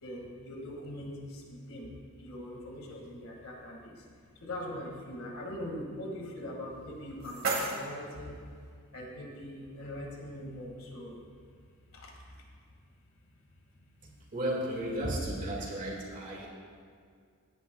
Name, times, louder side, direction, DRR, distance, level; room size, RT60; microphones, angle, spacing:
voice 1, 0.0-1.9 2.2-3.9 4.4-8.4 8.9-11.2 11.9-12.1, left 1 dB, 70° left, 0 dB, 1.9 m, -41 dB
sound 1, 6.7-8.7, right 3 dB, 60° right, 2.0 m, -36 dB
voice 2, 14.0-16.5, right 1 dB, 40° right, -3 dB, 1.9 m, -34 dB
17.0 x 9.8 x 2.3 m, 2.1 s
head